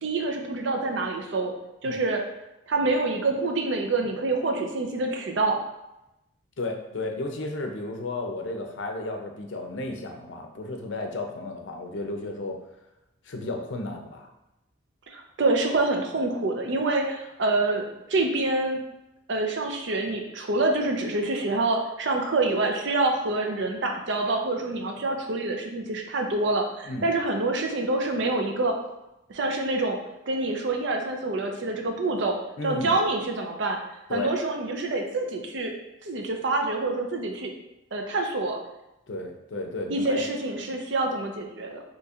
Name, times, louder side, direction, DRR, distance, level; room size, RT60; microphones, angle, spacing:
voice 1, 0.0-1.5 1.8-2.2 2.7-5.6 15.1-17.8 18.1-18.8 19.3-28.8 29.3-30.0 30.3-32.4 32.6-33.8 34.1-35.7 36.0-37.5 37.9-38.6 39.9-41.8, right 2 dB, 65° right, 3 dB, 0.5 m, -26 dB
voice 2, 6.6-12.6 13.2-14.3 26.8-27.1 32.6-33.0 34.1-34.3 39.1-40.3, left 2 dB, 70° left, 3 dB, 0.5 m, -33 dB
4.2 x 2.9 x 2.4 m, 0.92 s
head